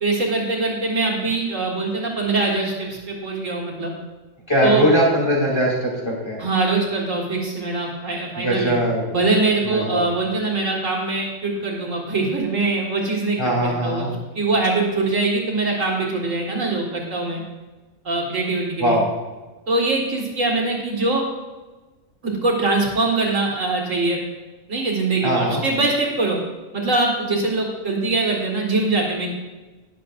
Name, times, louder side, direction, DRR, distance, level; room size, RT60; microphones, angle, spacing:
voice 1, 0.0-3.9 4.6-4.9 6.4-8.7 9.1-17.4 18.0-19.0 19.7-21.2 22.2-24.2 24.7-26.4 26.7-29.3, right 3 dB, 70° right, -2 dB, 2.1 m, -23 dB
voice 2, 4.5-6.4 8.4-9.1 9.6-10.0 13.4-14.1 18.8-19.0 25.2-25.6, equal, 20° left, -5 dB, 3.3 m, -20 dB
20.0 x 7.0 x 2.5 m, 1.2 s
omnidirectional pair, 1.4 m